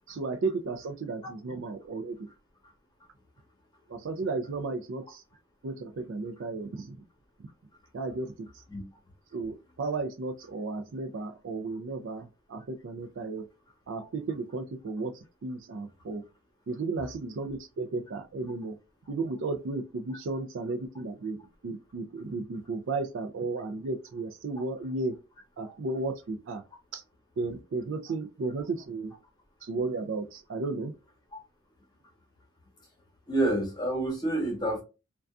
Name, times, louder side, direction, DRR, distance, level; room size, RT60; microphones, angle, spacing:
voice 1, 0.1-2.3 3.9-5.2 5.6-7.0 7.9-8.5 9.3-13.4 13.9-16.2 16.7-18.8 19.1-25.2 25.6-26.6 26.9-27.0 27.4-29.1 29.6-30.9, right 3 dB, 60° right, 0.4 m, -34 dB
voice 2, 33.3-34.8, right 1 dB, 20° left, 1.0 m, -28 dB
2.5 x 2.2 x 2.3 m
head